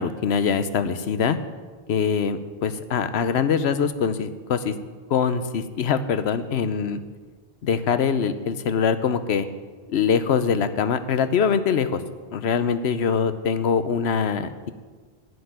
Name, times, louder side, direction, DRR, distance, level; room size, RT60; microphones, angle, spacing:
voice 1, 0.0-1.4 1.9-4.7 5.1-7.0 7.6-9.5 9.9-12.0 12.3-14.7, left 6 dB, 75° left, 11 dB, 1.0 m, -23 dB
11.0 x 6.7 x 9.3 m, 1.4 s
omnidirectional pair, 1.1 m